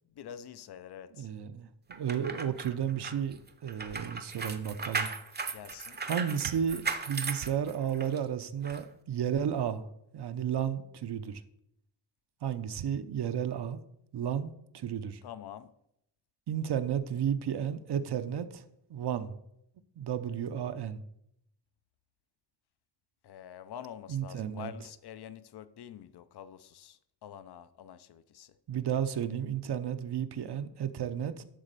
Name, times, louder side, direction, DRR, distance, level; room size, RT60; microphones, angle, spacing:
voice 1, 0.1-1.3 5.5-6.0 15.2-15.7 23.2-28.5, left 9 dB, 70° left, 0.6 m, -47 dB
voice 2, 1.2-5.1 6.1-9.9 10.1-11.4 12.4-13.8 14.1-15.2 16.5-18.6 18.9-19.4 20.0-21.0 24.1-24.7 28.7-31.4, right 8 dB, 70° right, 0.7 m, -33 dB
sound 1, 1.9-8.2 8.6-8.8, right 4 dB, 25° right, 0.6 m, -37 dB
11.5 x 4.1 x 6.7 m
wide cardioid pair, 175°, 41 cm